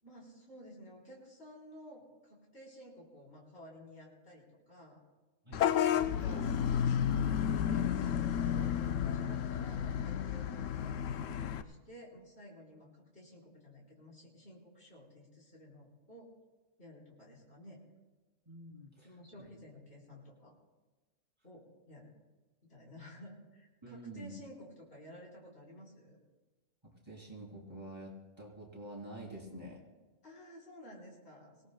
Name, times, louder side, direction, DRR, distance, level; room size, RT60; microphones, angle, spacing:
voice 1, 0.0-5.0 6.0-7.3 7.6-16.3 16.8-17.8 19.0-20.5 21.4-22.1 22.7-26.2 30.2-31.6, equal, 55° left, -3 dB, 4.0 m, -53 dB
Vehicle horn car horn honking / Bus, 5.5-11.6, left 9 dB, 85° left, 1.0 m, -32 dB
voice 2, 18.4-19.5 23.8-24.3 26.8-29.8, right 1 dB, 20° right, -3 dB, 3.3 m, -48 dB
25.5 x 17.5 x 2.2 m, 1.2 s
omnidirectional pair, 1.3 m